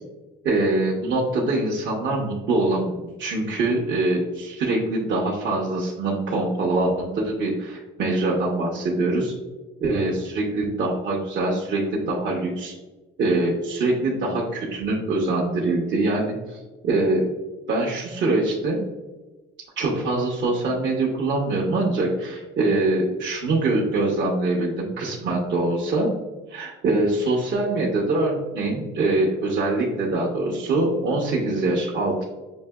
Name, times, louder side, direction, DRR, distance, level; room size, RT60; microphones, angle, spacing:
voice 1, 0.4-9.3 9.8-12.7 13.2-17.3 17.7-18.8 19.8-26.1 26.5-32.2, right 2 dB, 65° right, -3 dB, 0.9 m, -24 dB
6.4 x 2.8 x 2.3 m, 1.2 s
cardioid pair, 90°, 20 cm